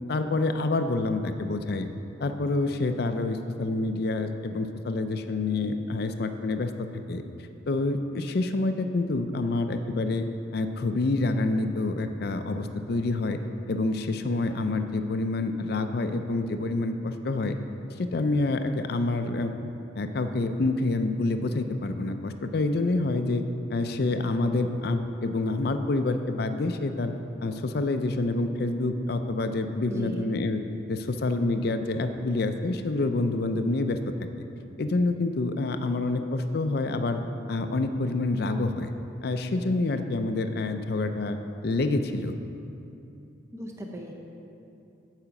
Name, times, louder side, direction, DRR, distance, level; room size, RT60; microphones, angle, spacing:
voice 1, 0.1-1.9 2.2-7.2 7.7-10.2 10.5-13.4 13.7-17.6 18.0-19.5 19.9-23.4 23.7-27.1 27.4-30.6 30.9-34.0 34.8-37.2 37.5-38.9 39.2-42.4, left 2 dB, 55° left, 8 dB, 0.4 m, -27 dB
voice 2, 29.9-30.2 43.5-44.1, right 1 dB, 15° right, 1 dB, 0.7 m, -37 dB
8.7 x 4.9 x 7.0 m, 2.8 s
head